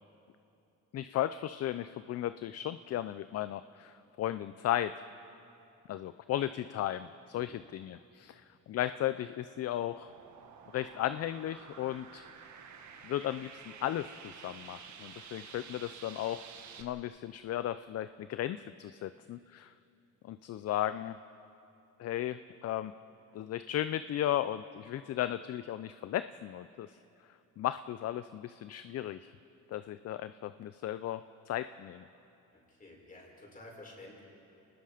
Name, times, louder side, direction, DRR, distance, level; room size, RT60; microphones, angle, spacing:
voice 1, 0.9-5.0 5.9-8.4 8.7-10.1 10.7-12.2 13.0-16.5 16.8-19.7 20.2-21.2 22.0-22.9 23.3-27.0 27.6-29.3 29.7-32.0, left 12 dB, 50° left, 13 dB, 0.5 m, -35 dB
sound 1, 9.9-16.8, right 7 dB, 60° right, 1.8 m, -51 dB
voice 2, 32.5-34.2, left 2 dB, 25° left, -2 dB, 5.7 m, -52 dB
29.0 x 19.5 x 5.0 m, 2.8 s
cardioid pair, 120°, 32 cm